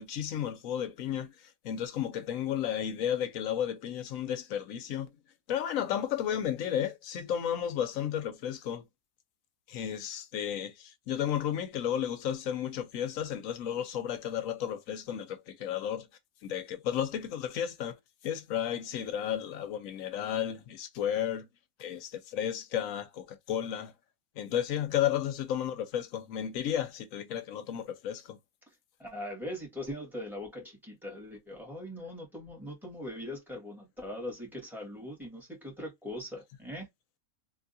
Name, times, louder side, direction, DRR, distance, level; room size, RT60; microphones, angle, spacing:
voice 1, 0.0-1.3 1.6-5.1 5.5-8.8 9.7-16.1 16.4-18.0 18.2-21.5 21.8-23.9 24.4-28.4, left 10 dB, 75° left, 1.0 m, -33 dB
voice 2, 29.0-36.9, left 1 dB, ahead, 1.6 m, -41 dB
3.4 x 2.7 x 2.6 m
omnidirectional pair, 1.5 m